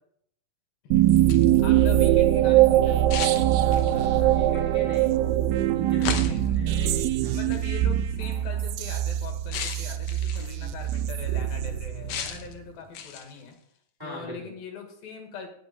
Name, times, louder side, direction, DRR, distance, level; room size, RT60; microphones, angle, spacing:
voice 1, 0.8-3.2 6.2-7.0 7.3-13.6 14.0-15.5, left 6 dB, 85° left, 3 dB, 3.6 m, -42 dB
sound 1, 0.9-12.5, right 13 dB, 85° right, 2.3 m, -22 dB
sound 2, 1.1-1.6 3.1-4.0 6.0-6.6 7.5-7.7 9.5-10.6 12.1-12.5 12.9-13.4, left 8 dB, 65° left, 1.9 m, -34 dB
voice 2, 3.9-5.1 5.7-7.4 10.4-10.7 14.0-14.5, left 1 dB, 5° right, -3 dB, 2.3 m, -40 dB
18.0 x 6.2 x 4.1 m, 0.70 s
omnidirectional pair, 4.1 m